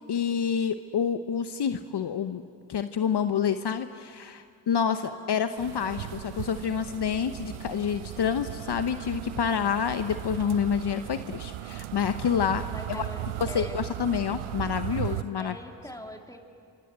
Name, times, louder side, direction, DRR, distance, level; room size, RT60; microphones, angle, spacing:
voice 1, 0.1-2.4 2.7-12.6 12.9-13.0 13.5-15.6, left 7 dB, 55° left, 9 dB, 1.0 m, -28 dB
voice 2, 4.9-5.3 12.7-13.8 15.4-16.4, left 1 dB, 5° left, 3 dB, 3.4 m, -43 dB
sound 1, 5.6-15.2, right 15 dB, 85° right, 0.7 m, -37 dB
28.5 x 24.5 x 8.2 m, 2.3 s
supercardioid pair, 50°, 48 cm